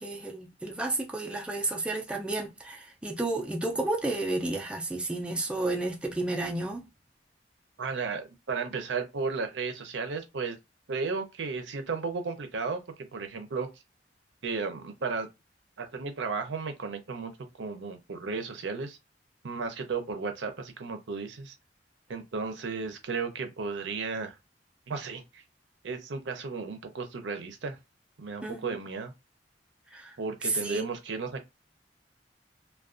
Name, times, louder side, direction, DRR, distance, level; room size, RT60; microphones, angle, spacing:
voice 1, 0.0-6.8 28.4-28.6 29.9-30.1 30.4-30.9, right 2 dB, 5° right, 0.3 m, -31 dB
voice 2, 7.8-10.6 10.9-13.7 14.4-15.3 15.8-17.3 17.6-19.0 19.4-21.5 22.1-24.4 24.9-25.4 25.8-27.8 28.2-29.1 30.2-31.4, right 4 dB, 85° right, 0.6 m, -34 dB
2.4 x 2.2 x 2.4 m
head